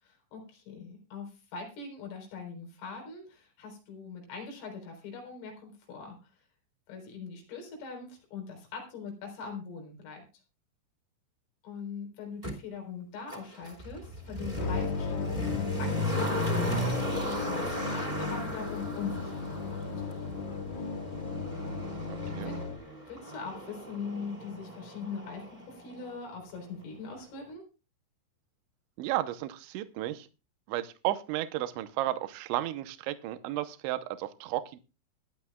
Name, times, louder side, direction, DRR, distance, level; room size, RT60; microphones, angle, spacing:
voice 1, 0.0-6.3 6.9-10.2 11.6-19.9 21.8-22.1 22.4-22.6 23.1-27.6, left 5 dB, 90° left, 2 dB, 6.5 m, -42 dB
Motor vehicle (road), 12.4-12.5 13.3-26.2 26.5-26.6, equal, 15° right, 1.9 m, -36 dB
sound 1, 14.6-22.8, left 5 dB, 60° left, 1.6 m, -35 dB
voice 2, 29.0-30.3 30.7-34.8, right 14 dB, 80° right, 11 dB, 3.0 m, -33 dB
21.0 x 11.5 x 2.3 m, 0.32 s
omnidirectional pair, 5.5 m